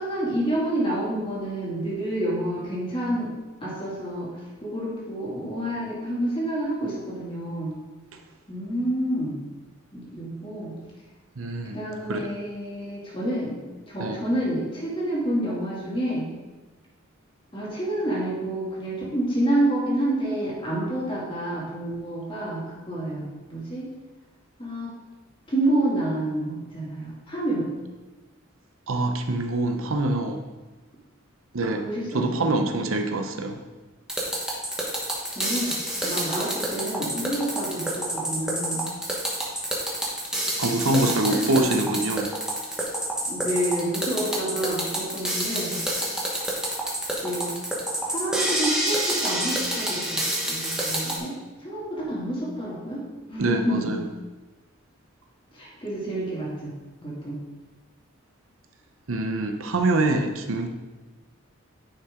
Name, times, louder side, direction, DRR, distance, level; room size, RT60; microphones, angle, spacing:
voice 1, 0.0-3.3 3.6-4.3 4.6-7.8 8.5-9.4 9.9-10.7 11.7-13.6 13.9-16.3 17.5-23.9 24.6-24.9 25.5-27.7 31.6-32.3 35.4-38.9 41.3-41.8 43.3-45.8 47.2-47.5 48.1-53.0 53.3-54.0 55.5-56.7 57.0-57.4, right 1 dB, 25° left, -6 dB, 2.5 m, -28 dB
voice 2, 11.4-11.8 12.1-12.3 14.0-14.2 28.9-30.4 31.5-31.8 32.1-33.6 40.6-42.3 53.4-54.0 59.1-60.7, right 2 dB, 80° right, 5 dB, 0.8 m, -25 dB
sound 1, 34.1-51.2, right 1 dB, 5° right, 1.3 m, -28 dB
9.7 x 5.7 x 3.7 m, 1.2 s
head